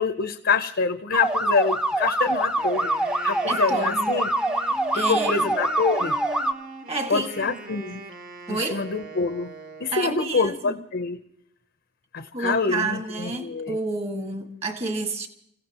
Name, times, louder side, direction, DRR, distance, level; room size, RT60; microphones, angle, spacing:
voice 1, 0.0-2.9 3.2-4.3 5.1-6.2 7.1-8.0 8.5-9.5 9.8-11.2 12.1-13.8, left 5 dB, 60° left, 0.8 m, -26 dB
sound 1, 1.1-6.5, right 1 dB, 5° right, 0.8 m, -24 dB
Wind instrument woodwind instrument, 2.5-10.2, right 3 dB, 45° right, 1.6 m, -40 dB
voice 2, 3.5-4.1 4.9-5.5 6.9-7.6 8.5-8.9 9.9-10.8 12.3-15.3, right 3 dB, 30° right, 1.8 m, -30 dB
30.0 x 16.0 x 3.0 m
head